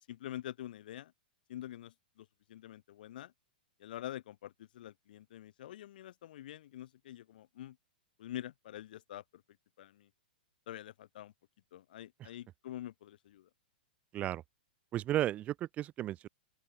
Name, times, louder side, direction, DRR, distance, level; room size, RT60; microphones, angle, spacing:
voice 1, 0.1-1.1 1.5-3.3 3.8-7.8 8.2-9.4 9.8-10.1 10.7-11.3 11.7-13.5, left 12 dB, 65° left, 4.1 m, -46 dB
voice 2, 14.9-16.3, right 13 dB, 25° right, 1.6 m, -34 dB
open air
hypercardioid pair, 140°, 5 cm